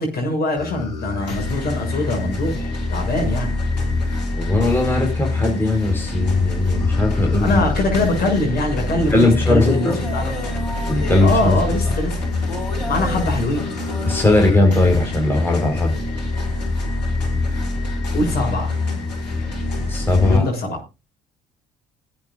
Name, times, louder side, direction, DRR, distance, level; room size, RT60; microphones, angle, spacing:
voice 1, 0.0-3.5 7.4-10.5 11.2-12.1 12.9-13.6 18.1-18.7 20.2-20.8, left 2 dB, 50° left, 1 dB, 7.1 m, -23 dB
sound 1, 0.6-20.4, left 2 dB, 90° left, 2.2 m, -24 dB
voice 2, 4.3-7.6 9.1-10.0 10.9-11.6 14.1-16.0 19.9-20.5, left 2 dB, 10° left, 0 dB, 4.4 m, -18 dB
21.5 x 8.8 x 2.5 m, 0.27 s
hypercardioid pair, 55°, 21 cm